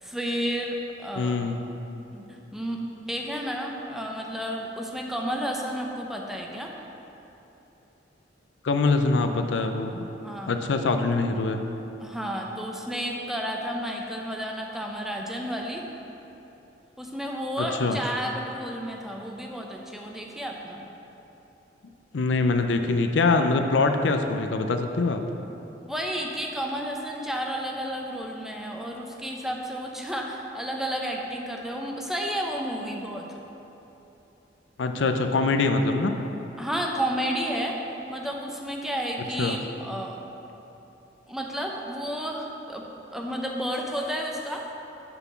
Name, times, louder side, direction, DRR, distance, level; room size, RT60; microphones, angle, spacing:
voice 1, 0.0-1.4 2.1-6.7 10.2-10.5 12.0-15.9 17.0-20.8 25.8-33.3 36.6-37.8 38.1-40.2 41.3-42.8 43.1-44.7, equal, ahead, 0 dB, 0.6 m, -31 dB
voice 2, 1.2-1.6 8.6-10.0 10.5-11.6 17.6-18.0 22.1-25.2 34.8-36.2 39.4-39.6, left 3 dB, 80° left, 6 dB, 0.5 m, -24 dB
6.0 x 5.8 x 6.9 m, 3.0 s
head